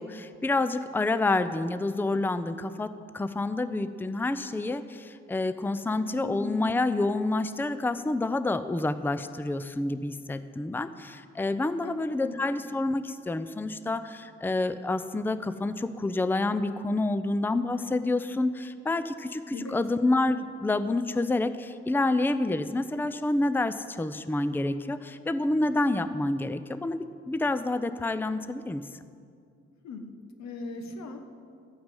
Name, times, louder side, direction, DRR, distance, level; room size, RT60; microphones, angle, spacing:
voice 1, 0.0-28.8, left 2 dB, 5° left, 12 dB, 0.6 m, -28 dB
voice 2, 6.2-6.6 11.8-12.4 19.5-19.8 29.8-30.1 30.4-31.4, left 3 dB, 60° left, 6 dB, 1.4 m, -39 dB
13.5 x 8.7 x 5.4 m, 2.3 s
hypercardioid pair, 40°, 32 cm